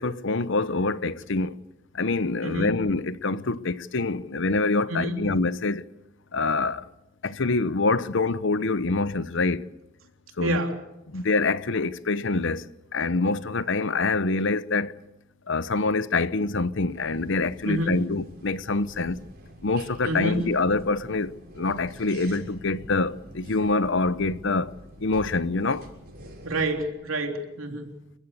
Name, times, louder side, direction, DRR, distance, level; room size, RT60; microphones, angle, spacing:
voice 1, 0.0-1.5 1.9-5.8 6.3-6.8 7.2-9.7 10.4-10.6 11.1-12.6 12.9-15.0 15.5-19.2 19.6-24.7 25.0-25.9, left 3 dB, 60° left, 0.9 m, -25 dB
voice 2, 2.4-2.8 4.9-5.2 10.4-10.8 17.6-18.1 20.0-20.5 26.4-27.9, right 1 dB, 75° right, 3.3 m, -28 dB
sound 1, 16.9-26.9, right 1 dB, 50° right, 6.7 m, -46 dB
29.5 x 15.5 x 8.4 m
head